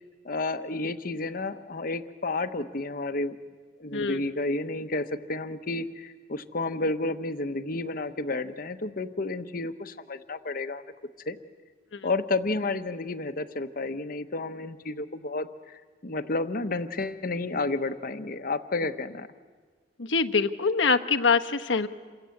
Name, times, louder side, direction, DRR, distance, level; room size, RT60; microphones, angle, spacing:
voice 1, 0.2-3.4 3.8-10.8 11.3-11.4 12.0-19.3, left 2 dB, 50° left, 9 dB, 1.0 m, -31 dB
voice 2, 20.0-21.9, left 4 dB, 85° left, 6 dB, 1.2 m, -24 dB
28.5 x 23.0 x 8.5 m, 1.5 s
head